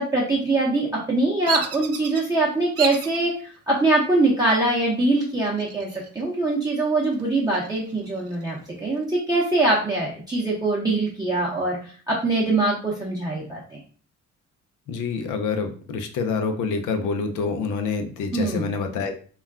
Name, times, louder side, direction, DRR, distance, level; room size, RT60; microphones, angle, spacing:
voice 1, 0.0-13.6 18.3-18.7, right 2 dB, 15° right, -6 dB, 0.7 m, -23 dB
Bird vocalization bird call bird song, 1.5-2.2 2.8-3.2 3.8-4.3 5.4-6.2 6.6-6.7 7.1-8.5, right 7 dB, 55° right, 0.4 m, -31 dB
voice 2, 14.9-19.2, left 5 dB, 85° left, 6 dB, 0.5 m, -27 dB
2.3 x 2.1 x 3.4 m, 0.42 s
cardioid pair, 90°, 30 cm